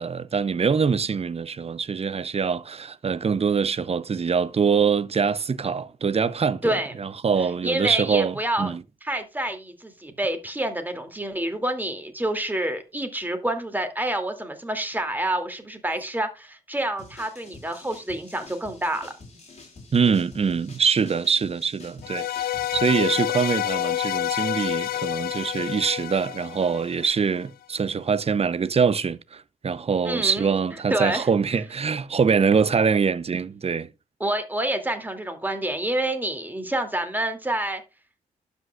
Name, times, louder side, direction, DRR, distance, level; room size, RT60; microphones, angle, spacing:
voice 1, 0.0-8.8 19.9-33.9, right 6 dB, 40° right, 0.7 m, -24 dB
voice 2, 6.6-6.9 7.6-8.7 9.0-19.1 30.0-30.5 30.9-31.2 34.2-37.8, right 1 dB, 10° right, 2.5 m, -28 dB
sound 1, 17.0-22.9, left 3 dB, 45° left, 3.7 m, -47 dB
sound 2, 22.0-27.3, left 13 dB, 75° left, 0.4 m, -28 dB
12.0 x 5.5 x 2.4 m
supercardioid pair, 55°, 16 cm